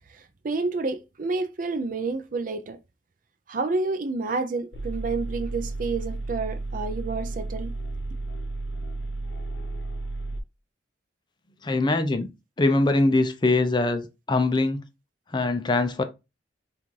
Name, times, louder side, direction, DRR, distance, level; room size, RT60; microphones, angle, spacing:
voice 1, 0.4-2.8 3.5-7.7, right 3 dB, 45° right, 0.4 m, -29 dB
sound 1, 4.7-10.4, right 2 dB, 70° left, 0.8 m, -33 dB
voice 2, 11.6-12.3 12.6-14.8 15.3-16.0, left 2 dB, 25° left, 0.4 m, -22 dB
5.7 x 2.5 x 3.1 m
head